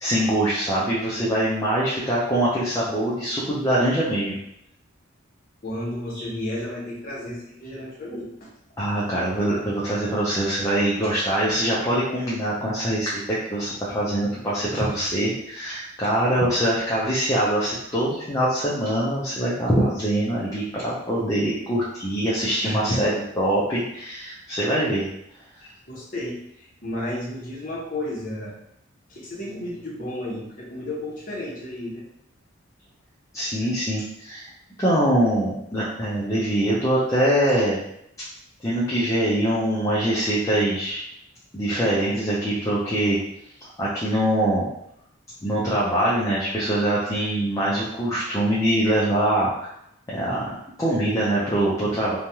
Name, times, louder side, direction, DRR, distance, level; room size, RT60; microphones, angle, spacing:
voice 1, 0.0-4.4 6.1-6.3 8.8-25.1 33.3-34.4 34.8-37.8 38.2-38.3 38.6-41.0 41.5-43.2 43.6-44.7 45.4-49.7 50.1-50.4 50.8-52.2, right 1 dB, 15° left, -8 dB, 0.5 m, -23 dB
voice 2, 5.6-8.5 9.5-9.7 22.6-23.0 25.9-28.6 29.1-32.0, left 1 dB, 40° left, -5 dB, 0.9 m, -33 dB
3.1 x 2.2 x 2.7 m, 0.77 s
head